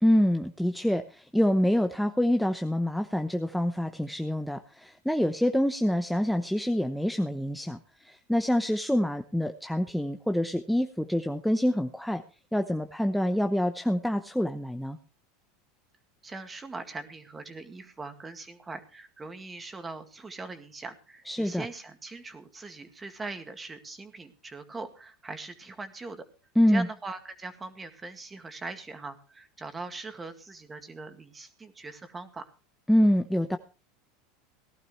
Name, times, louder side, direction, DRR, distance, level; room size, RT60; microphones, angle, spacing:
voice 1, 0.0-12.2 12.5-15.0 21.3-21.7 26.6-26.9 32.9-33.6, equal, ahead, 7 dB, 0.8 m, -26 dB
voice 2, 16.2-26.2 26.7-32.5, right 3 dB, 15° right, 8 dB, 2.0 m, -41 dB
18.5 x 12.0 x 3.2 m, 0.35 s
supercardioid pair, 115°, 0 cm